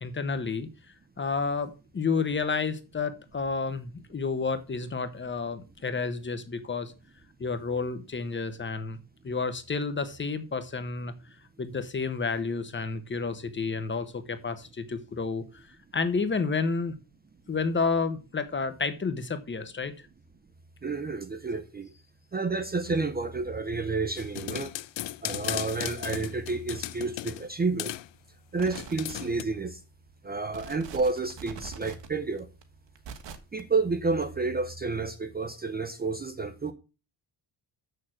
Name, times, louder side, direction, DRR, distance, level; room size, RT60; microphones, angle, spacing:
voice 1, 0.0-0.7 1.2-6.9 7.4-9.0 9.2-11.1 11.6-15.6 15.9-16.9 17.5-19.9, left 4 dB, 25° left, 0.9 m, -30 dB
voice 2, 20.8-21.9 22.3-24.7 25.2-28.0 28.5-29.8 30.2-32.5 33.5-36.7, right 3 dB, 20° right, 0.6 m, -30 dB
sound 1, 24.2-27.5 27.8-28.1 28.7-29.4, left 15 dB, 70° left, 0.6 m, -36 dB
sound 2, 28.6-29.6 30.1-30.2 30.5-33.6 34.2-34.3, right 7 dB, 70° right, 1.5 m, -43 dB
7.3 x 6.7 x 6.3 m
cardioid pair, 160°, 46 cm